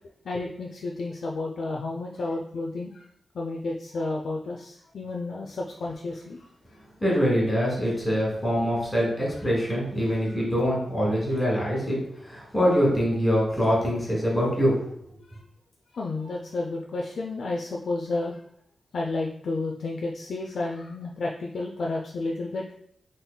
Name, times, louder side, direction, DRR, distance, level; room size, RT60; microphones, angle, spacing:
voice 1, 0.2-3.1 3.3-6.5 10.1-10.4 15.2-15.4 15.9-18.4 18.9-22.7, left 2 dB, 75° left, -1 dB, 0.3 m, -31 dB
voice 2, 7.0-14.7, equal, 10° left, -4 dB, 1.5 m, -24 dB
3.8 x 3.7 x 2.2 m, 0.71 s
wide cardioid pair, 125°, 0 cm